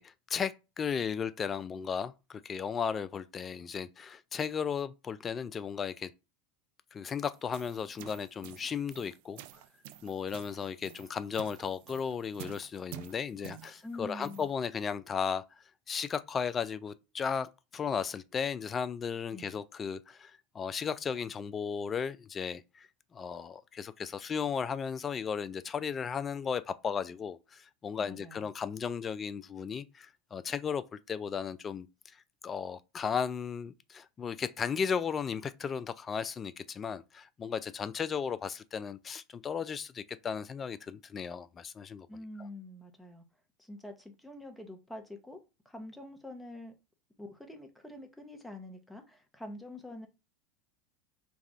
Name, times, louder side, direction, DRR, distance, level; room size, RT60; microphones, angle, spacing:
voice 1, 0.0-6.1 6.9-9.4 10.0-15.4 15.9-32.2 32.4-42.1 42.4-42.5, left 6 dB, 30° left, 0.4 m, -35 dB
sound 1, 7.3-14.5, right 14 dB, 65° right, 0.3 m, -50 dB
voice 2, 13.8-14.5 19.3-19.6 28.0-28.5 42.1-43.2 43.7-45.4 45.6-46.7 47.2-50.1, left 1 dB, 5° left, 0.9 m, -45 dB
3.5 x 2.4 x 4.1 m
hypercardioid pair, 85°, 0 cm